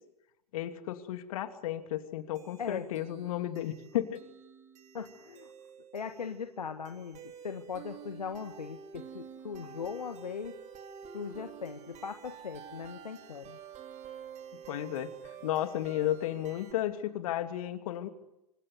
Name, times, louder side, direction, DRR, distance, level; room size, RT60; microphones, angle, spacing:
voice 1, 0.5-4.2 14.7-18.1, left 12 dB, 60° left, 9 dB, 2.8 m, -33 dB
sound 1, 2.3-16.7, right 7 dB, 35° right, 4.5 m, -49 dB
voice 2, 4.9-5.5 5.9-10.6 11.1-13.6, left 6 dB, 80° left, 8 dB, 1.6 m, -39 dB
27.0 x 26.0 x 8.0 m, 0.89 s
figure-of-eight pair, 90°, 20 cm